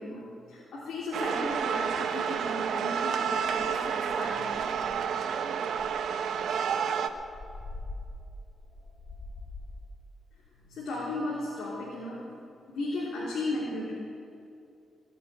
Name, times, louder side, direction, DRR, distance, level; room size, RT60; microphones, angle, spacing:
voice 1, 0.0-4.7 10.6-12.2 12.7-13.9, left 2 dB, 75° left, -6 dB, 3.3 m, -35 dB
sound 1, 1.1-7.1, right 7 dB, 75° right, 0.8 m, -30 dB
sound 2, 3.0-3.1 3.5-3.8 4.1-4.2 4.5-5.2 5.7-9.9, left 2 dB, 35° left, 2.3 m, -44 dB
19.5 x 6.9 x 9.0 m, 2.6 s
cardioid pair, 90°, 0 cm